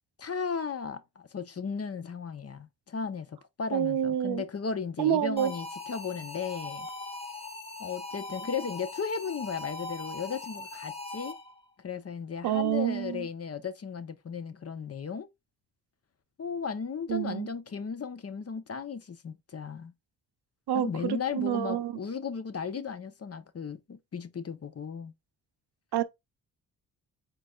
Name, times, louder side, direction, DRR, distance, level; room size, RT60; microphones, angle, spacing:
voice 1, 0.2-6.9 7.8-11.4 11.8-15.3 16.4-19.9 20.7-25.1, left 6 dB, 35° left, 0.7 m, -35 dB
voice 2, 3.7-4.4 5.0-5.5 12.4-13.3 17.1-17.5 20.7-22.0 25.9-26.0, right 11 dB, 70° right, 0.7 m, -28 dB
sound 1, 5.4-11.6, left 2 dB, 15° left, 1.2 m, -40 dB
4.5 x 3.9 x 2.4 m
cardioid pair, 60°, 41 cm